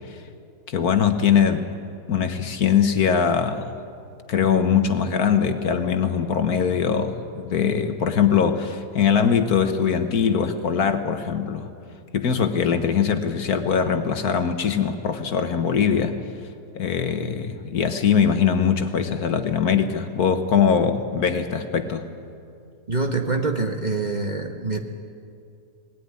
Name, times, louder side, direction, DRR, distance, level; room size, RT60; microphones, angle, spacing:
voice 1, 0.7-1.7 2.1-3.7 4.3-11.7 12.1-16.2 16.7-22.1, left 7 dB, 65° left, 8 dB, 1.6 m, -21 dB
voice 2, 22.9-24.8, right 3 dB, 30° right, 3 dB, 1.3 m, -25 dB
20.5 x 17.0 x 9.7 m, 2.4 s
omnidirectional pair, 1.8 m